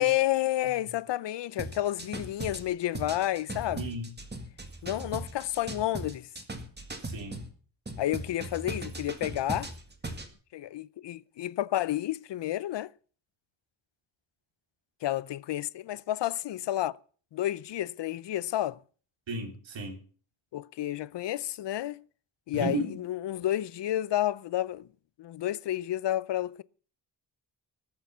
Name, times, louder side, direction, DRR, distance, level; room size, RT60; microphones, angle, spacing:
voice 1, 0.0-3.8 4.8-6.3 8.0-9.7 10.5-12.9 15.0-16.9 17.3-18.8 20.5-22.0 22.5-24.9 25.2-26.6, left 13 dB, 70° left, 0.6 m, -30 dB
sound 1, 1.6-7.5 7.9-10.3, right 2 dB, 25° right, 1.9 m, -38 dB
voice 2, 3.7-4.1 7.0-7.4 19.3-20.0 22.5-22.9, right 2 dB, 80° right, 3.4 m, -34 dB
21.0 x 6.9 x 5.5 m
wide cardioid pair, 135°, 44 cm